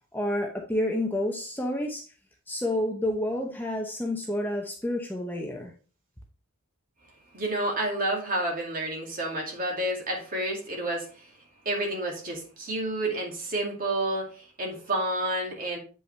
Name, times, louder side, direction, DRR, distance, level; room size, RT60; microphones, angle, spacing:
voice 1, 0.1-2.1 2.5-5.7, left 1 dB, 10° left, 0.8 m, -29 dB
voice 2, 7.3-11.3 11.6-15.8, right 1 dB, 40° right, 2.4 m, -30 dB
8.4 x 5.5 x 3.3 m
head